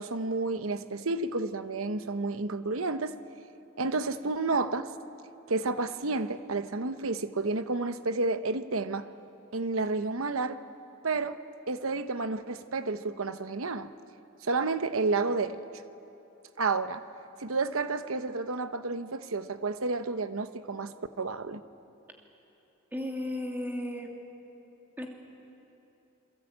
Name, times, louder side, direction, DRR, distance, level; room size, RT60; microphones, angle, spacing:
voice 1, 0.0-3.1 3.8-4.9 5.5-9.1 9.5-10.6 11.0-11.4 11.7-13.9 14.4-15.6 16.6-17.0 17.4-21.6, right 3 dB, 70° right, 11 dB, 1.0 m, -30 dB
voice 2, 22.9-24.1 25.0-25.1, left 1 dB, 10° right, 1 dB, 2.7 m, -34 dB
28.0 x 22.5 x 8.7 m, 2.9 s
head